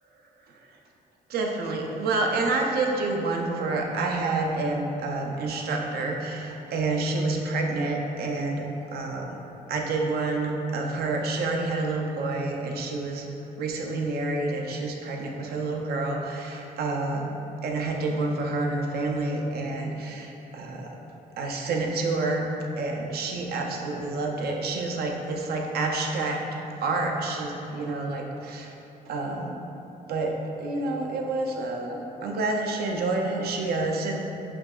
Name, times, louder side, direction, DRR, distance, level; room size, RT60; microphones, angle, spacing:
voice 1, 1.3-9.4 9.7-13.3 13.6-17.3 17.6-21.0 21.4-22.5 22.8-28.7 29.1-29.6 30.1-34.2, right 3 dB, 70° right, 1 dB, 0.5 m, -28 dB
5.9 x 2.8 x 2.3 m, 3.0 s
cardioid pair, 130°, 17 cm